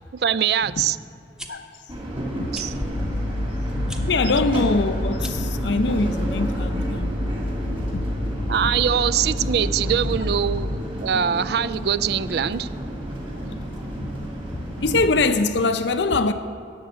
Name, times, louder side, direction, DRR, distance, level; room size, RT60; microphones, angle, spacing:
voice 1, 0.1-1.0 2.5-2.7 8.5-12.7, right 8 dB, 60° right, 0.3 m, -23 dB
sound 1, 1.2-1.5 2.5-2.7 3.8-4.0 5.1-5.5, equal, 5° right, 0.8 m, -38 dB
sound 2, 1.9-15.1, equal, 30° right, 2.3 m, -32 dB
sound 3, 2.8-11.8, left 1 dB, 25° left, 0.5 m, -29 dB
voice 2, 3.8-7.1 7.8-8.0 13.4-13.5 14.0-14.3 14.5-16.3, left 3 dB, 85° left, 0.7 m, -23 dB
11.0 x 7.3 x 9.0 m
head